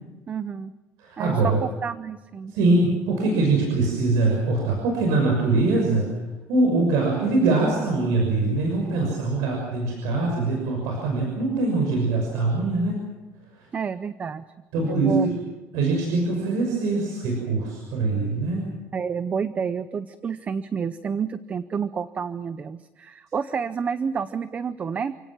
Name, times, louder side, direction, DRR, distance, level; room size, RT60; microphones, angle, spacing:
voice 1, 0.3-0.7 1.2-1.5 1.8-2.8 13.7-14.4 14.9-15.3 18.9-25.2, right 6 dB, 25° right, 13 dB, 0.7 m, -29 dB
voice 2, 1.0-1.6 2.5-6.1 6.5-13.0 13.6-13.7 14.7-15.2 15.7-18.6, right 3 dB, 90° right, 1 dB, 6.3 m, -23 dB
28.5 x 17.5 x 7.4 m, 1.2 s
cardioid pair, 160°, 6 cm